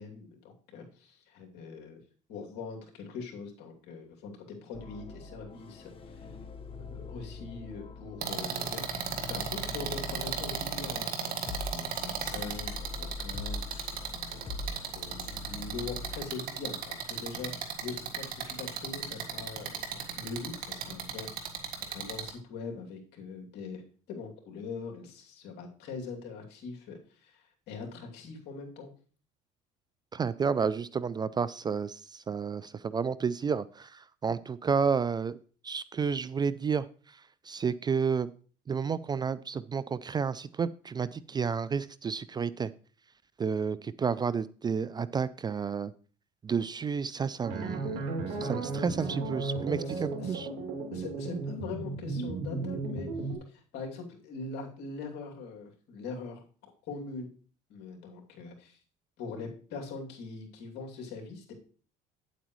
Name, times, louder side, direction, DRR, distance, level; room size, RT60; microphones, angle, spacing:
voice 1, 0.0-2.0 2.3-6.4 6.8-8.8 9.3-13.6 14.3-28.9 47.4-47.7 48.2-48.4 49.0-49.2 49.8-50.4 50.9-53.1 53.5-57.3 57.7-58.8 59.2-61.5, left 4 dB, 70° left, 1 dB, 2.6 m, -42 dB
sound 1, 4.7-11.0 11.5-16.2, left 2 dB, 30° left, 1.1 m, -42 dB
sound 2, 8.2-22.3, right 7 dB, 60° right, 1.7 m, -35 dB
voice 2, 30.1-35.4 35.6-38.3 38.7-42.7 43.4-45.9 46.4-48.0 48.4-50.5, right 6 dB, 25° right, 17 dB, 0.3 m, -31 dB
sound 3, 47.4-53.4, right 3 dB, 85° right, 2.8 m, -35 dB
9.1 x 8.1 x 3.1 m, 0.41 s
supercardioid pair, 100°, 18 cm